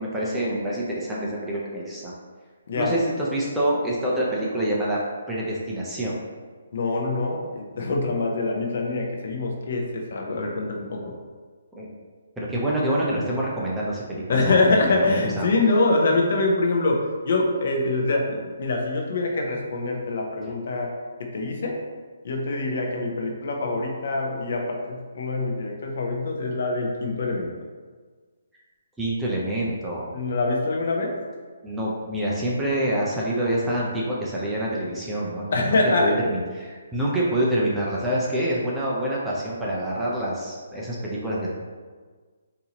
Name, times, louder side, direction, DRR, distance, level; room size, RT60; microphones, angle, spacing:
voice 1, 0.0-2.1 2.7-5.0 5.3-6.2 11.7-11.9 12.4-15.5 29.0-30.1 31.6-41.5, right 1 dB, 5° right, -6 dB, 0.4 m, -26 dB
voice 2, 6.7-11.1 14.3-20.9 21.2-21.8 22.2-27.5 30.1-31.2 35.5-36.2, left 2 dB, 55° left, 1 dB, 0.7 m, -24 dB
4.1 x 2.6 x 2.9 m, 1.5 s
hypercardioid pair, 165°, 0 cm